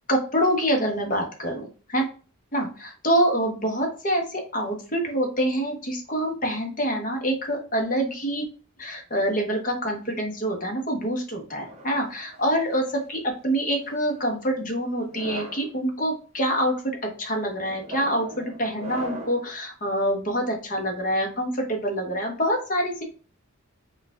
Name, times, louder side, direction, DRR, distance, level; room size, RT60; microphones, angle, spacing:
voice 1, 0.1-2.1 2.5-8.4 8.8-23.0, equal, 40° left, 2 dB, 1.1 m, -26 dB
sound 1, 11.6-13.0 13.8-14.2 15.0-15.7 16.4-16.7 17.6-19.5, right 2 dB, 30° right, 0.7 m, -39 dB
4.6 x 2.5 x 3.5 m, 0.36 s
head